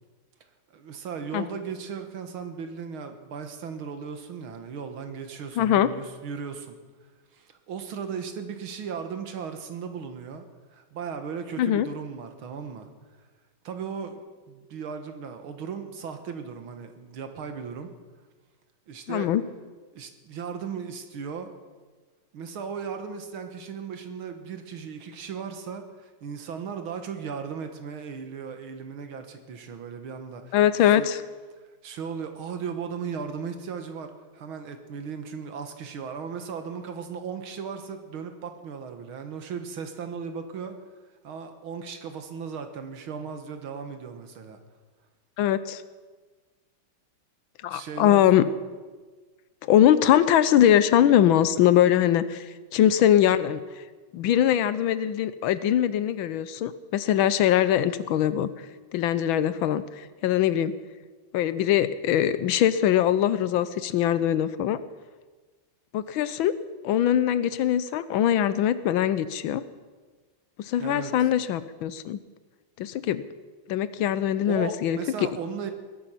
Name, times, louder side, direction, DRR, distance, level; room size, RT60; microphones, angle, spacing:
voice 1, 0.7-6.8 7.3-10.4 10.7-12.9 13.6-14.2 14.5-17.9 18.9-19.3 19.9-21.5 22.3-31.1 31.8-40.8 41.2-44.6 47.7-48.2 70.8-71.1 74.5-75.7, right 6 dB, 90° right, 7 dB, 2.3 m, -36 dB
voice 2, 5.6-5.9 11.6-11.9 19.1-19.4 30.5-31.2 45.4-45.8 47.6-48.5 49.7-53.8 54.1-58.5 58.9-60.8 61.3-64.8 65.9-66.6 66.8-69.6 70.6-72.2 72.8-73.2 73.7-75.3, left 11 dB, 80° left, 14 dB, 1.5 m, -22 dB
20.0 x 11.0 x 5.8 m, 1.4 s
omnidirectional pair, 2.2 m